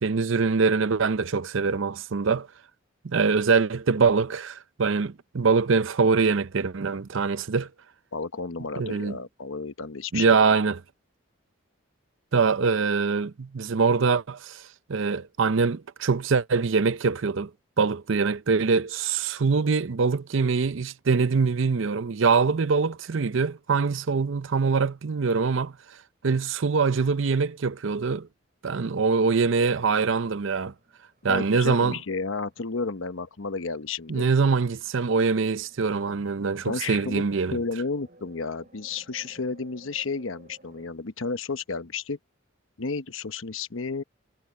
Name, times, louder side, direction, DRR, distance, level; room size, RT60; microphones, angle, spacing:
voice 1, 0.0-2.5 3.0-7.7 8.8-9.2 10.1-10.8 12.3-14.6 14.9-17.5 17.8-25.7 26.2-28.3 28.6-30.7 31.2-32.0 34.1-37.6, right 4 dB, 70° right, 0.6 m, -23 dB
voice 2, 8.1-10.5 31.3-34.3 36.6-37.2 37.5-42.2 42.8-44.0, left 4 dB, 80° left, 1.0 m, -32 dB
sound 1, 30.7-31.6 31.9-32.5 32.8-32.9 33.7-40.9, right 1 dB, 40° right, 7.4 m, -56 dB
head